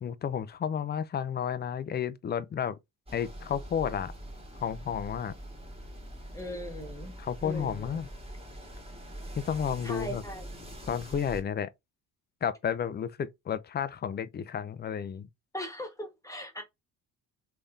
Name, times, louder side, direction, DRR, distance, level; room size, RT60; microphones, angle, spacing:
voice 1, 0.0-2.8 3.1-4.1 4.6-5.3 7.2-8.1 9.4-10.2 10.9-11.7 12.4-15.3, left 8 dB, 25° left, 0.4 m, -32 dB
sound 1, 3.1-11.4, right 1 dB, 15° right, 1.7 m, -43 dB
voice 2, 6.3-7.1 7.4-8.0 9.8-10.5 15.5-16.6, left 1 dB, 10° left, 1.3 m, -39 dB
3.6 x 3.4 x 2.6 m
cardioid pair, 90°, 40 cm